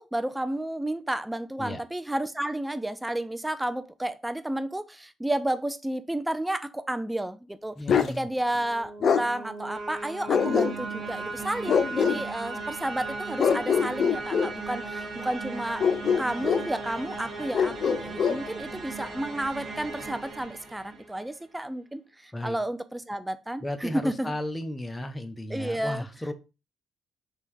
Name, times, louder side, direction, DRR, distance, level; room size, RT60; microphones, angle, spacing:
voice 1, 0.0-15.8 16.2-24.3 25.5-26.1, right 1 dB, 10° right, 0.4 m, -31 dB
voice 2, 7.8-8.3 22.3-22.6 23.6-26.3, left 1 dB, 15° left, 0.8 m, -34 dB
Bark, 7.9-8.2 9.0-9.3 10.3-11.0 11.7-12.2 13.4-14.5 15.8-16.7 17.5-18.4, left 7 dB, 55° left, 0.4 m, -24 dB
sound 1, 8.3-21.3, right 3 dB, 35° right, 1.7 m, -37 dB
3.5 x 3.0 x 4.5 m
cardioid pair, 90°, 0 cm